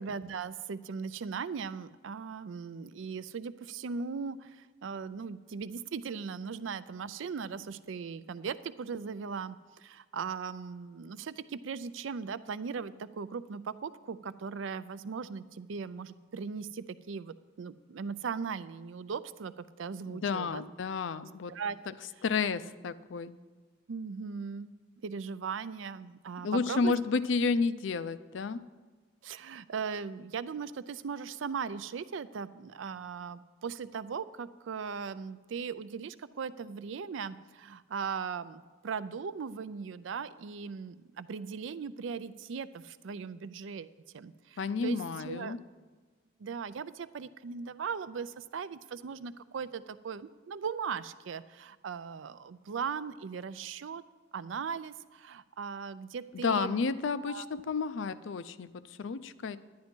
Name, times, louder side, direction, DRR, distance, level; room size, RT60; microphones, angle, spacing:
voice 1, 0.0-20.6 21.5-21.8 23.9-24.8 25.0-26.9 29.2-43.9 44.1-45.6 46.4-54.0 54.3-56.8 57.3-57.6, right 6 dB, 75° right, 15 dB, 0.4 m, -38 dB
voice 2, 20.1-21.5 22.2-23.3 26.4-28.6 44.6-45.6 56.3-59.6, left 4 dB, 75° left, 14 dB, 0.4 m, -31 dB
10.5 x 10.5 x 4.4 m, 1.4 s
head